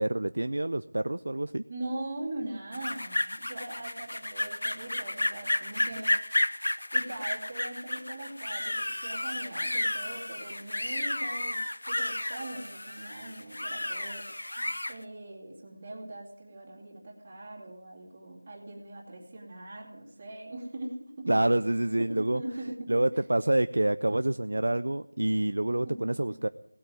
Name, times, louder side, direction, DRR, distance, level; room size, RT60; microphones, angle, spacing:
voice 1, 0.0-1.6 21.3-22.4 22.9-26.5, right 1 dB, 75° right, 12 dB, 0.5 m, -27 dB
voice 2, 1.7-6.6 6.9-21.3 22.0-22.9 25.6-26.0, right 1 dB, 20° right, -5 dB, 2.6 m, -41 dB
sound 1, 2.7-15.0, left 1 dB, 80° left, 1.0 m, -32 dB
18.0 x 8.6 x 9.3 m, 0.77 s
figure-of-eight pair, 175°, 0 cm